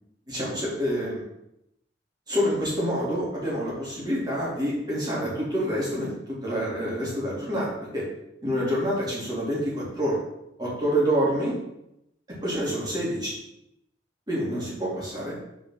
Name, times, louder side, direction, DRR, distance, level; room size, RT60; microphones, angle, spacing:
voice 1, 0.3-1.2 2.3-8.0 8.4-10.2 10.6-11.5 12.4-13.3 14.3-15.4, equal, 20° right, -6 dB, 2.5 m, -27 dB
5.3 x 4.3 x 5.5 m, 0.85 s
head